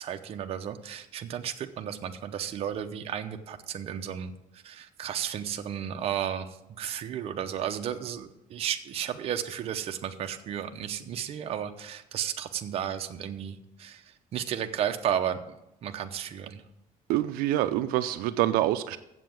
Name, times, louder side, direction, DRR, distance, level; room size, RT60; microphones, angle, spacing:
voice 1, 0.0-16.6, right 9 dB, 40° right, 6 dB, 0.8 m, -33 dB
voice 2, 17.1-19.0, right 14 dB, 85° right, 11 dB, 0.5 m, -26 dB
7.6 x 7.6 x 7.6 m, 0.87 s
cardioid pair, 160°, 15 cm